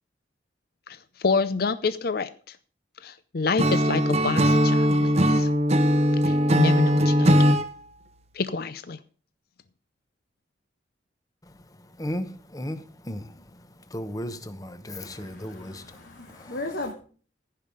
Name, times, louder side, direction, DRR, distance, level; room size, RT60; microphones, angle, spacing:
voice 1, 0.9-2.6 3.0-5.5 6.2-7.6 8.3-9.0, left 4 dB, 55° left, 0.5 m, -28 dB
Acoustic guitar / Strum, 3.6-7.7, equal, 35° right, 0.7 m, -20 dB
voice 2, 12.0-13.3 13.9-15.8 16.3-16.5, equal, 20° left, 0.9 m, -35 dB
voice 3, 15.0-16.9, left 2 dB, 75° left, 1.9 m, -36 dB
15.0 x 5.5 x 6.6 m
head